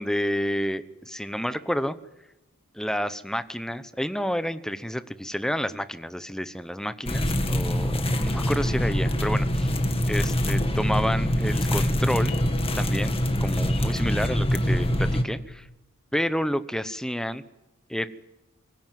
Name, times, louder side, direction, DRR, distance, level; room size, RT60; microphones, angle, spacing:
voice 1, 0.0-2.0 2.7-9.7 10.1-12.3 12.8-13.1 13.4-15.7 16.1-17.4 17.9-18.1, equal, 5° left, 12 dB, 1.0 m, -29 dB
sound 1, 7.1-15.2, equal, 25° left, 2.0 m, -24 dB
24.5 x 17.0 x 9.4 m, 0.99 s
head